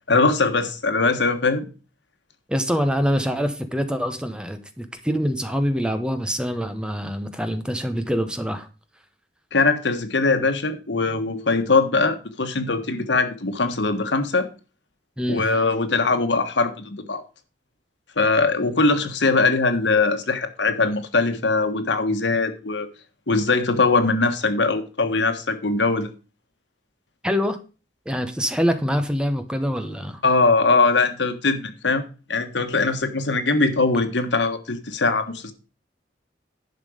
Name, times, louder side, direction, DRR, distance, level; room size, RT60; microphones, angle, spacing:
voice 1, 0.1-1.6 9.5-14.5 15.3-17.2 18.2-22.9 23.3-26.1 30.2-32.0 32.3-35.5, left 3 dB, 85° left, 1.5 m, -21 dB
voice 2, 2.5-8.7 15.2-15.5 27.2-27.6 28.1-30.2, equal, 5° right, 0.9 m, -25 dB
11.0 x 6.0 x 5.1 m
head